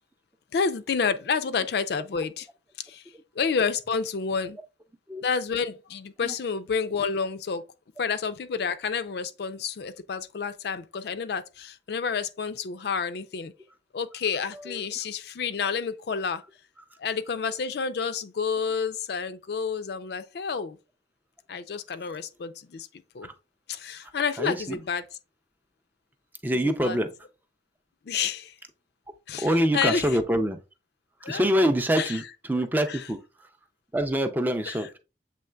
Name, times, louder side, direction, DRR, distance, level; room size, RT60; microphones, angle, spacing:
voice 1, 0.5-2.5 2.8-3.0 3.4-4.6 5.2-7.6 8.0-13.5 13.9-16.4 17.0-20.8 21.5-22.9 23.1-23.3 23.7-25.0 26.8-27.0 28.1-28.5 29.3-29.5 29.7-30.0 31.2-31.4 32.0-32.1 34.7-34.8, left 5 dB, 60° left, 0.4 m, -29 dB
voice 2, 24.4-24.8 26.4-27.1 29.4-30.6 31.2-33.5 33.9-34.9, equal, 10° right, 0.4 m, -26 dB
7.5 x 3.1 x 2.2 m
head